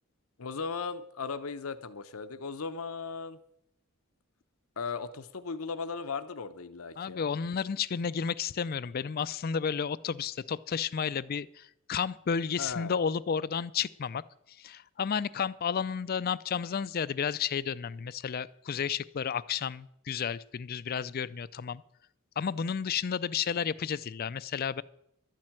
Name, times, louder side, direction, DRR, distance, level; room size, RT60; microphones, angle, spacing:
voice 1, 0.4-3.4 4.8-7.2 12.6-12.9, left 5 dB, 80° left, 9 dB, 0.8 m, -37 dB
voice 2, 7.0-14.2 14.6-21.8 22.4-24.8, left 7 dB, 45° left, 18 dB, 0.4 m, -32 dB
12.0 x 7.5 x 8.9 m, 0.77 s
head